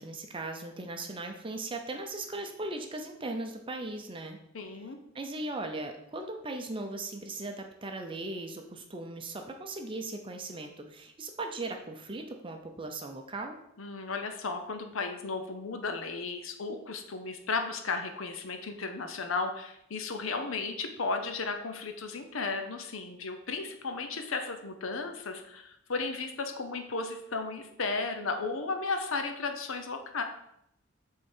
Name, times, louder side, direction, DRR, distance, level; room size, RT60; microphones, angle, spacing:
voice 1, 0.0-4.4 5.1-13.6, right 2 dB, 25° right, 4 dB, 0.6 m, -38 dB
voice 2, 4.5-5.0 13.8-30.2, left 4 dB, 70° left, 6 dB, 0.8 m, -34 dB
7.9 x 3.7 x 4.4 m, 0.77 s
head